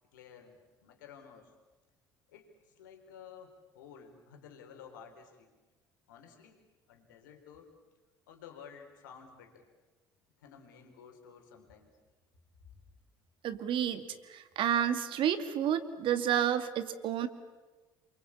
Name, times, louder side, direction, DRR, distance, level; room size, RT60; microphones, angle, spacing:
voice 1, 0.1-1.5 2.3-5.5 6.1-6.6 6.9-7.7 8.3-9.6 10.4-12.0, left 7 dB, 80° left, 4 dB, 4.1 m, -53 dB
voice 2, 13.4-14.0 14.3-17.3, right 9 dB, 55° right, 11 dB, 2.3 m, -30 dB
28.5 x 23.5 x 8.6 m, 1.2 s
hypercardioid pair, 60°, 10 cm